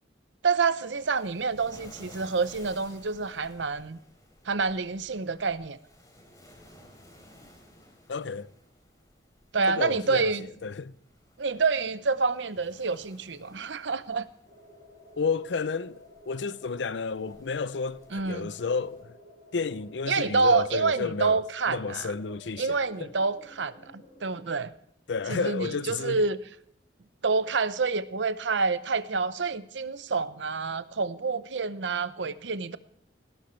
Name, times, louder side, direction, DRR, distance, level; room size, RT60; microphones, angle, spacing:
voice 1, 0.4-4.0 4.4-5.8 9.5-10.5 11.4-14.3 18.1-18.5 20.1-22.1 22.6-24.7 25.3-26.4 27.2-32.8, right 4 dB, 85° right, 0.7 m, -28 dB
Waves surf, 0.8-19.0, left 1 dB, 20° left, 3.6 m, -56 dB
voice 2, 8.1-8.5 9.7-10.3 10.6-10.9 15.2-19.1 19.5-21.4 21.7-23.1 25.1-26.2, left 5 dB, 80° left, 0.6 m, -31 dB
sound 1, 14.4-24.5, left 1 dB, 45° left, 6.5 m, -53 dB
17.5 x 11.5 x 3.2 m
head